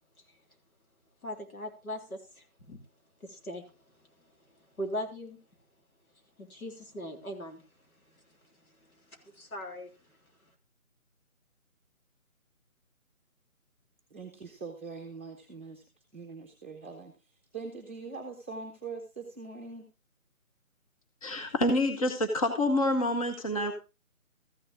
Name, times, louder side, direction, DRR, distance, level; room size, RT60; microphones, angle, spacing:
voice 1, 1.2-2.8 3.2-3.7 4.8-5.4 6.4-7.6 8.7-9.9, equal, 80° left, 3.7 m, -40 dB
voice 2, 14.1-15.8 16.1-17.1 17.5-19.9, right 4 dB, 10° right, 0.9 m, -42 dB
voice 3, 21.2-23.7, left 1 dB, 25° left, 0.9 m, -27 dB
14.0 x 7.0 x 3.7 m
figure-of-eight pair, 160°, 43 cm